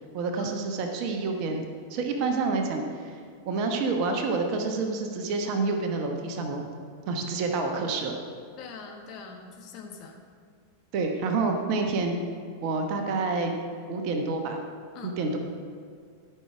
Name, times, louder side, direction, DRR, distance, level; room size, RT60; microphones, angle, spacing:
voice 1, 0.1-1.6 1.9-3.1 3.4-6.7 7.1-8.2 10.9-12.2 12.6-13.5 13.9-14.6 15.0-15.4, right 3 dB, 45° right, 3 dB, 1.1 m, -28 dB
voice 2, 8.6-10.2 14.9-15.3, left 5 dB, 40° left, 1 dB, 1.4 m, -43 dB
12.5 x 5.8 x 4.9 m, 2.2 s
figure-of-eight pair, 90°, 0 cm